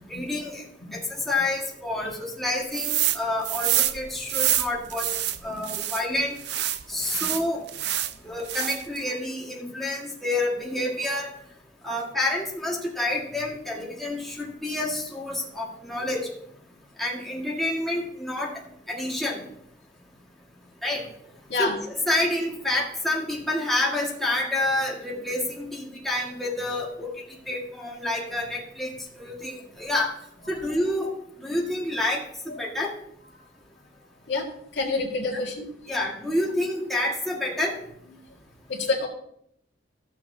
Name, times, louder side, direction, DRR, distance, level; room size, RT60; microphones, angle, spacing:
voice 1, 0.1-0.6 0.9-5.1 5.4-6.4 6.9-7.6 8.2-11.3 11.8-16.3 17.0-18.5 18.9-19.4 20.8-21.1 21.6-30.1 30.5-31.1 31.4-32.9 35.9-37.8, left 1 dB, ahead, -4 dB, 1.7 m, -28 dB
sound 1, 2.7-3.2 3.4-6.0 6.4-8.1 8.4-9.0, right 12 dB, 65° right, 0.5 m, -26 dB
voice 2, 34.7-35.6 38.7-39.1, left 3 dB, 75° left, 0 dB, 2.0 m, -27 dB
14.5 x 7.0 x 2.7 m, 0.71 s
head